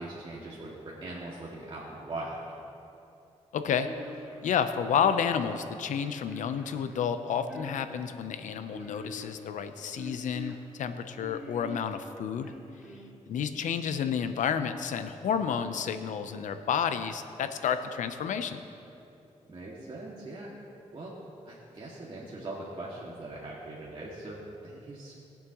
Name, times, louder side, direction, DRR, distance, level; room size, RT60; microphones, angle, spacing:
voice 1, 0.0-2.4 19.5-20.5 20.9-21.1 21.5-25.1, right 2 dB, 40° right, -6 dB, 2.0 m, -41 dB
voice 2, 3.5-3.9 4.4-12.5 13.3-18.6, left 7 dB, 80° left, 9 dB, 0.7 m, -30 dB
sound 1, 3.8-4.5 5.0-5.6 6.3-7.0 7.4-8.1 8.7-9.4 10.0-10.5 11.2-11.9 12.4-13.1, equal, 5° right, 2.5 m, -44 dB
21.5 x 7.5 x 3.0 m, 2.8 s
cardioid pair, 65°, 13 cm